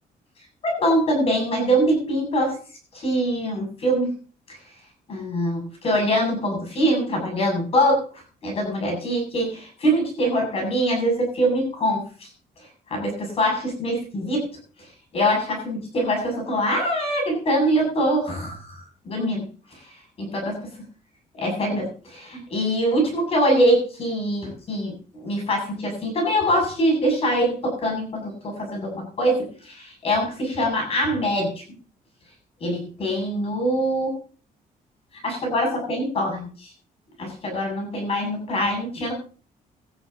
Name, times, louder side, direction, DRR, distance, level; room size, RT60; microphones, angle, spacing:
voice 1, 0.6-2.6 2.9-4.1 4.5-4.6 5.1-12.3 12.9-14.5 15.1-19.4 19.7-19.8 20.3-20.4 21.4-31.6 32.6-34.1 35.2-36.7 37.2-39.1, equal, 40° left, 2 dB, 7.4 m, -23 dB
18.0 x 13.5 x 2.9 m, 0.39 s
cardioid pair, 170°, 15 cm